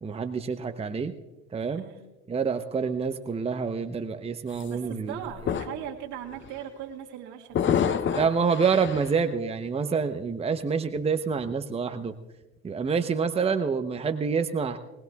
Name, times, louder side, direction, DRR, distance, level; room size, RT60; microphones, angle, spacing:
voice 1, 0.0-1.1 1.5-1.8 2.3-5.2 8.1-12.1 12.6-14.8, right 5 dB, 20° right, 9 dB, 0.8 m, -27 dB
sound 1, 4.5-4.7 5.2-5.9 6.3-6.6 7.5-9.2, left 8 dB, 40° left, 0.8 m, -28 dB
voice 2, 4.7-8.5, right 10 dB, 70° right, 1 dB, 1.8 m, -40 dB
20.0 x 20.0 x 2.3 m, 1.1 s
supercardioid pair, 90°, 31 cm